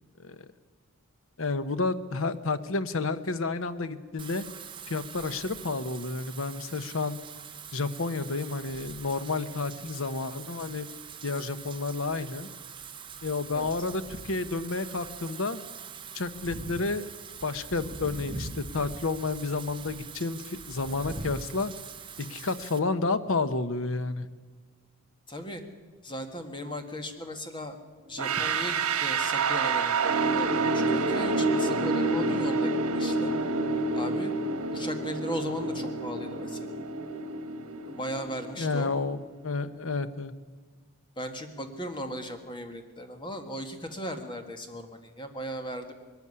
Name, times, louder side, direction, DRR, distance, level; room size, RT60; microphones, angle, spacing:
voice 1, 1.4-4.4 4.9-7.2 7.7-10.9 11.2-12.5 13.2-15.6 16.1-17.1 17.4-21.7 22.2-24.3 38.6-40.3, left 3 dB, 60° left, 12 dB, 0.9 m, -30 dB
Wind / Rain, 4.2-22.8, right 5 dB, 20° right, 0.9 m, -43 dB
voice 2, 25.3-25.6 26.0-27.8 28.1-33.3 33.9-34.3 34.7-36.6 37.8-38.9 41.2-45.9, equal, 20° left, 6 dB, 1.7 m, -37 dB
sound 1, 28.2-39.1, right 3 dB, 80° right, 1.6 m, -28 dB
21.0 x 13.0 x 9.7 m, 1.5 s
head